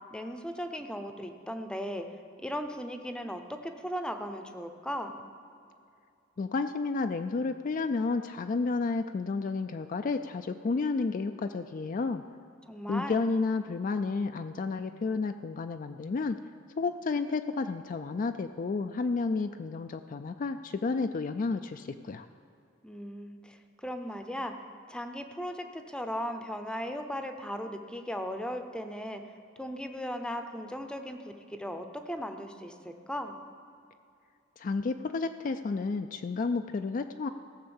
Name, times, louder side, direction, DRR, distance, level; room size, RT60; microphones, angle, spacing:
voice 1, 0.1-2.0 2.4-5.3 12.7-13.3 22.8-24.5 24.9-29.2 29.6-31.2 31.5-33.4, equal, 5° left, 7 dB, 0.7 m, -37 dB
voice 2, 6.4-12.2 12.9-16.4 16.8-22.3 34.6-37.3, left 4 dB, 45° left, 7 dB, 0.4 m, -31 dB
16.0 x 6.5 x 7.1 m, 2.5 s
head